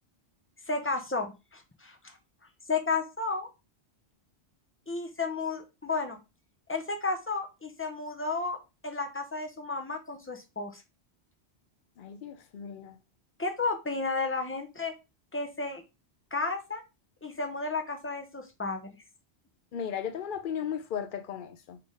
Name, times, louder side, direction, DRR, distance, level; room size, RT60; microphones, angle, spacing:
voice 1, 0.7-2.1 2.7-3.5 4.9-6.2 6.7-10.8 13.4-14.9 15.3-15.8 16.3-16.8 17.2-18.9, left 3 dB, 15° left, 0.5 m, -32 dB
voice 2, 12.0-13.0 19.7-21.8, left 8 dB, 55° left, 0.7 m, -36 dB
3.7 x 3.3 x 3.9 m
omnidirectional pair, 1.1 m